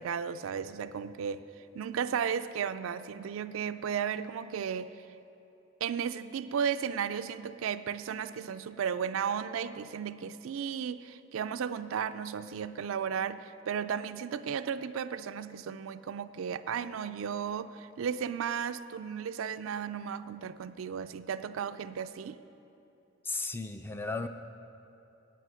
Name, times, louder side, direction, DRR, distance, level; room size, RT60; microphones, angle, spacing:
voice 1, 0.0-4.9 5.8-22.4, right 7 dB, 80° right, 12 dB, 0.3 m, -34 dB
voice 2, 23.2-24.3, left 3 dB, 10° left, 8 dB, 0.3 m, -35 dB
9.1 x 9.1 x 6.2 m, 2.9 s
head